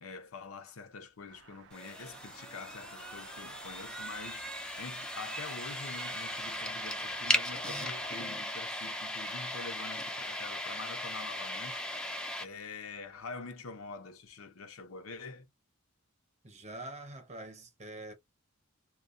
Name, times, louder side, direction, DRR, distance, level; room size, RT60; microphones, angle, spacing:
voice 1, 0.0-4.4 4.8-11.8 12.4-15.5, left 4 dB, 80° left, 0.7 m, -45 dB
sound 1, 1.3-8.2, right 6 dB, 60° right, 0.4 m, -52 dB
sound 2, 1.7-12.5, left 1 dB, 5° left, 0.4 m, -37 dB
voice 2, 16.4-18.1, right 2 dB, 35° right, 0.9 m, -45 dB
2.3 x 2.2 x 2.5 m
head